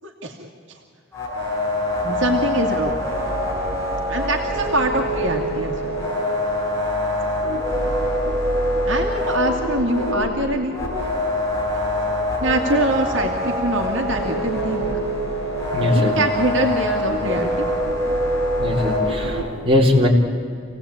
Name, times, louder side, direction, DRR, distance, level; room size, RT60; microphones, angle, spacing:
voice 1, 0.0-0.8 2.0-2.9 4.1-5.9 8.9-10.8 12.4-14.9 15.9-17.7, right 1 dB, 70° right, 2 dB, 2.2 m, -24 dB
sound 1, 1.1-19.4, left 1 dB, 15° left, 6.2 m, -24 dB
voice 2, 15.7-16.1 18.6-19.4 19.6-20.1, left 1 dB, 30° right, -2 dB, 3.9 m, -19 dB
27.0 x 17.5 x 8.7 m, 2.4 s
head